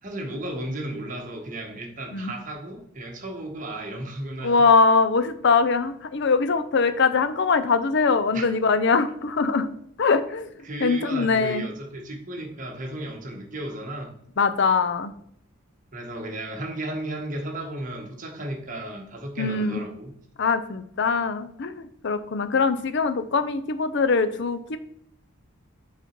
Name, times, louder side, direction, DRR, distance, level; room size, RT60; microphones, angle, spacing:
voice 1, 0.0-4.6 8.3-8.5 10.6-14.2 15.9-20.1, right 1 dB, 40° right, 2 dB, 1.3 m, -34 dB
voice 2, 4.4-9.7 10.0-10.5 10.8-11.6 14.4-15.1 19.4-19.8 20.4-24.8, left 4 dB, 55° left, 11 dB, 0.5 m, -22 dB
7.1 x 4.2 x 4.4 m, 0.69 s
head